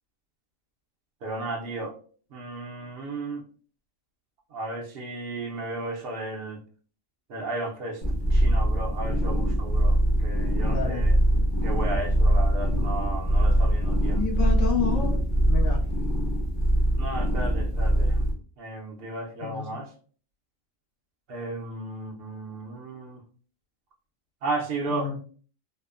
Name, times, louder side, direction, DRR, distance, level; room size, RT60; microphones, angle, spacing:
voice 1, 1.2-1.9 2.3-3.4 4.5-6.6 7.3-8.0 8.3-11.2 11.6-14.2 17.0-18.2 18.6-19.9 21.3-23.2 24.4-25.2, right 2 dB, 60° right, 2 dB, 0.6 m, -34 dB
sound 1, 8.0-18.3, right 1 dB, 35° left, 0.5 m, -23 dB
voice 2, 10.6-11.1 14.1-15.1 15.5-15.8 19.4-19.9 24.9-25.2, left 5 dB, 80° left, 1 dB, 1.1 m, -30 dB
2.9 x 2.0 x 2.3 m, 0.43 s
omnidirectional pair, 1.4 m